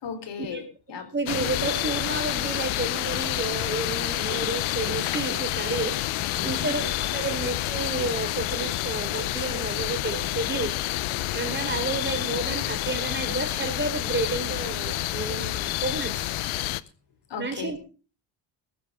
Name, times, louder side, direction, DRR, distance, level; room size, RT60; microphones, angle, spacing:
voice 1, 0.0-1.1 6.3-6.7 7.1-7.3 17.3-17.8, left 5 dB, 55° left, 8 dB, 4.0 m, -36 dB
voice 2, 1.1-16.3 17.4-17.8, right 3 dB, 20° right, 7 dB, 4.2 m, -31 dB
sound 1, 1.3-16.8, left 16 dB, 75° left, 1.0 m, -29 dB
sound 2, 1.4-16.6, right 11 dB, 80° right, 5.5 m, -46 dB
17.5 x 14.5 x 3.7 m, 0.36 s
cardioid pair, 110°, 49 cm